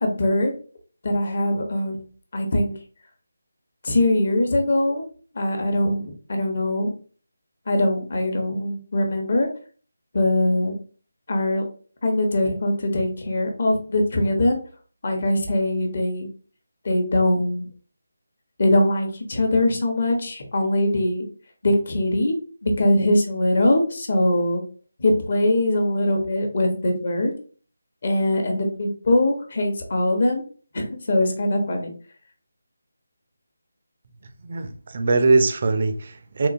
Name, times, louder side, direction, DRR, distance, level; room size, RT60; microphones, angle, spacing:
voice 1, 0.0-0.5 1.0-2.0 2.3-2.7 3.8-5.0 5.4-6.9 7.7-9.5 10.1-10.7 11.3-11.6 12.0-14.6 15.0-16.3 16.8-17.7 18.6-21.2 21.6-22.3 22.6-24.6 25.0-27.3 28.0-30.4 30.7-31.9, left 1 dB, 50° left, 3 dB, 0.8 m, -22 dB
voice 2, 34.4-36.5, right 3 dB, 45° right, 7 dB, 0.4 m, -21 dB
3.7 x 2.4 x 2.5 m, 0.41 s
figure-of-eight pair, 165°, 0 cm